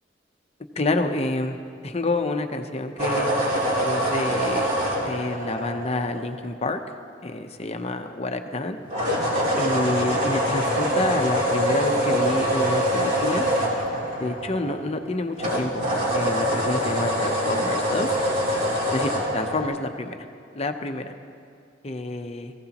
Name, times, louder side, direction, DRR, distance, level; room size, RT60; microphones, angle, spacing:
voice 1, 0.8-1.6 1.8-3.3 3.8-4.7 4.9-6.8 7.2-8.8 9.6-13.4 14.2-18.1 18.9-20.2 20.5-21.1 21.8-22.5, left 2 dB, 35° left, 6 dB, 0.8 m, -28 dB
sound 1, 3.0-6.4 8.9-15.0 15.4-19.6, equal, 40° right, 3.4 m, -24 dB
21.5 x 15.5 x 3.0 m, 2.4 s
head